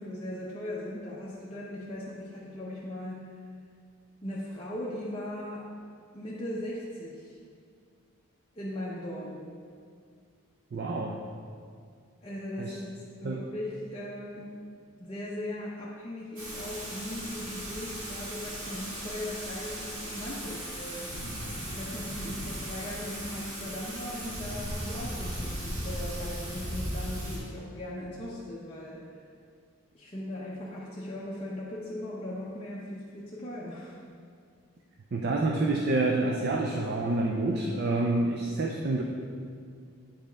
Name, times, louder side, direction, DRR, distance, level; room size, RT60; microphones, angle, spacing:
voice 1, 0.0-3.3 4.2-5.7 6.1-7.4 8.6-9.5 12.2-14.5 15.0-21.1 21.8-29.1 29.9-34.0, left 1 dB, 25° left, -7 dB, 0.6 m, -38 dB
voice 2, 10.7-11.2 12.6-12.8 13.2-13.4 35.1-39.0, right 2 dB, 45° right, 1 dB, 0.4 m, -28 dB
Thunder / Rain, 16.4-27.4, equal, 70° right, 1.8 m, -37 dB
8.5 x 5.1 x 3.4 m, 2.2 s
head